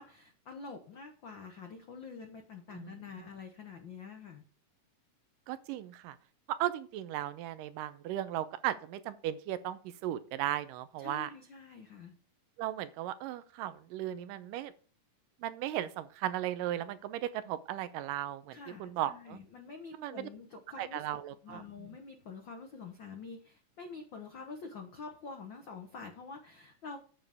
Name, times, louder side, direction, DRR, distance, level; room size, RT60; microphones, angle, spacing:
voice 1, 0.0-4.4 11.0-12.2 18.5-27.0, left 5 dB, 80° left, 4 dB, 1.0 m, -47 dB
voice 2, 2.7-3.3 5.5-6.2 6.5-11.3 12.6-14.7 15.4-19.4 19.9-20.3 20.8-21.9, right 12 dB, 85° right, 13 dB, 2.3 m, -36 dB
8.9 x 7.6 x 3.5 m, 0.42 s
omnidirectional pair, 3.8 m